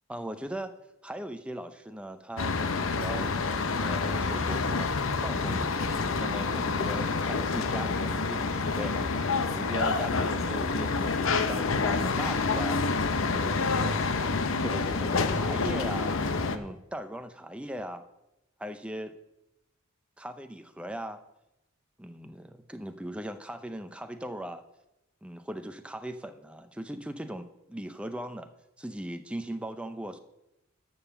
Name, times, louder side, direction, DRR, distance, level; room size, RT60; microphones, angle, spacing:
voice 1, 0.1-0.7 1.0-3.3 3.8-12.8 13.3-14.1 14.6-16.2 16.5-18.0 18.6-19.1 20.2-21.2 22.0-24.6 25.2-28.5 28.8-30.2, right 1 dB, 5° right, 8 dB, 0.5 m, -39 dB
sound 1, 2.4-16.6, left 4 dB, 70° left, 0.7 m, -28 dB
11.5 x 5.5 x 7.0 m, 0.92 s
head